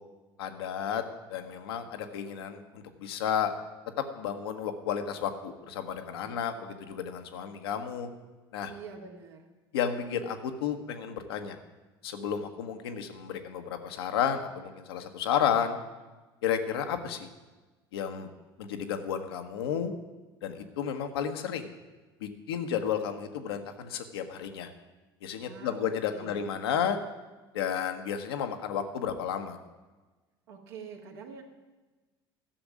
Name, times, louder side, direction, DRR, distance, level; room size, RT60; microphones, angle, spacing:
voice 1, 0.4-1.0 1.3-3.5 4.0-8.1 8.5-8.7 9.7-11.6 12.0-15.8 16.4-17.3 17.9-18.3 18.6-19.9 20.4-21.7 22.2-24.7 25.2-27.0 27.5-29.6, left 8 dB, 70° left, 6 dB, 1.2 m, -32 dB
voice 2, 8.7-9.5 25.4-26.4 30.5-31.4, right 5 dB, 70° right, 1 dB, 2.1 m, -46 dB
13.0 x 7.1 x 9.2 m, 1.2 s
figure-of-eight pair, 65°, 13 cm